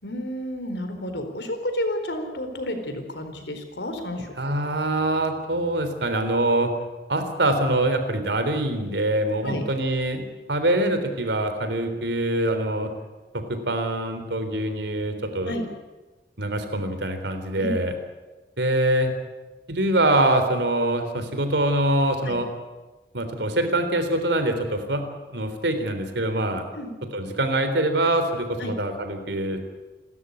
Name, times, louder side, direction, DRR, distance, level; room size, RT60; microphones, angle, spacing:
voice 1, 0.0-4.5 9.4-9.6 15.5-15.6 17.6-17.7 22.2-22.4 26.7-26.9 28.6-28.7, left 1 dB, 90° left, 7 dB, 4.2 m, -31 dB
voice 2, 4.4-6.7 7.1-10.2 10.5-12.9 13.5-15.5 16.4-17.9 18.6-19.1 19.7-22.5 23.1-25.0 25.3-26.7 27.1-29.6, right 1 dB, 90° right, 8 dB, 3.6 m, -24 dB
28.5 x 13.5 x 9.8 m, 1.2 s
head